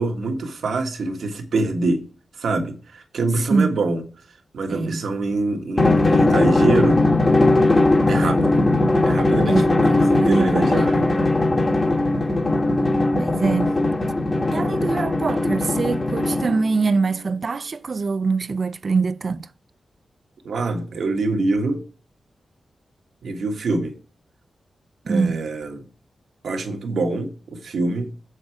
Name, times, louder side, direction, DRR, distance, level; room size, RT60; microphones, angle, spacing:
voice 1, 0.0-2.0 2.3-4.0 4.5-7.0 8.1-8.6 9.0-11.2 20.4-21.8 23.2-23.9 25.1-25.8 26.4-28.1, right 2 dB, 80° right, 1.6 m, -25 dB
voice 2, 3.4-3.8 4.7-5.0 9.5-10.7 10.9-11.0 13.1-13.7 14.5-19.5 25.1-25.4, right 4 dB, 50° right, 0.5 m, -24 dB
Drum, 5.8-16.8, left 2 dB, 35° left, 1.3 m, -19 dB
7.4 x 6.4 x 4.7 m
wide cardioid pair, 95°, 0 cm